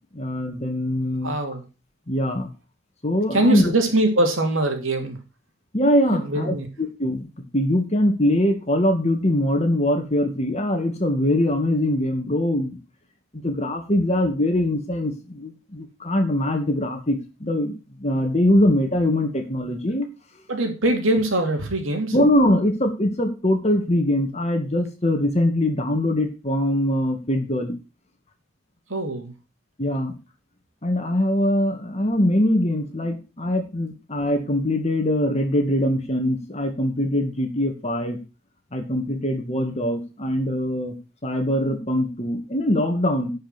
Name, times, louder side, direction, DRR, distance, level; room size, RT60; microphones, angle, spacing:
voice 1, 0.1-1.3 2.1-2.5 3.0-3.7 5.7-6.6 7.0-7.3 7.5-12.8 13.4-17.7 18.0-20.1 22.1-27.8 29.8-30.1 30.8-38.2 38.7-41.0 41.2-43.3, left 1 dB, 35° left, 5 dB, 2.2 m, -22 dB
voice 2, 1.2-1.6 3.3-5.2 6.1-6.7 20.5-22.1 28.9-29.3, right 1 dB, 80° right, 4 dB, 2.7 m, -22 dB
11.0 x 5.6 x 6.2 m, 0.31 s
head